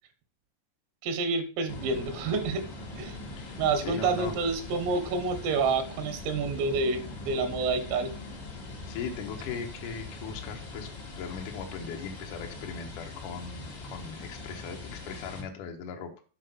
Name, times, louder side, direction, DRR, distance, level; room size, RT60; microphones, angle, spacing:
voice 1, 1.0-2.6 3.0-3.2 3.6-8.1, right 4 dB, 85° right, 7 dB, 4.0 m, -28 dB
sound 1, 1.7-15.4, left 2 dB, 55° left, 1.3 m, -41 dB
voice 2, 3.4-4.3 8.9-10.9 11.2-16.1, left 6 dB, 80° left, 3 dB, 1.8 m, -39 dB
7.7 x 5.8 x 5.7 m, 0.36 s
omnidirectional pair, 5.8 m